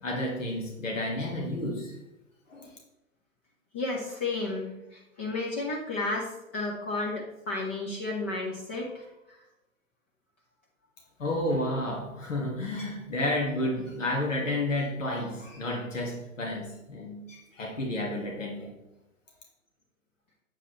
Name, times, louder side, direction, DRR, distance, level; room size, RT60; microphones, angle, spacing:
voice 1, 0.0-2.0 2.5-2.8 11.2-18.7, left 1 dB, 70° left, 0 dB, 1.6 m, -31 dB
voice 2, 3.7-9.4, left 2 dB, 10° left, -3 dB, 0.3 m, -33 dB
7.5 x 7.3 x 3.0 m, 0.93 s
figure-of-eight pair, 105°, 39 cm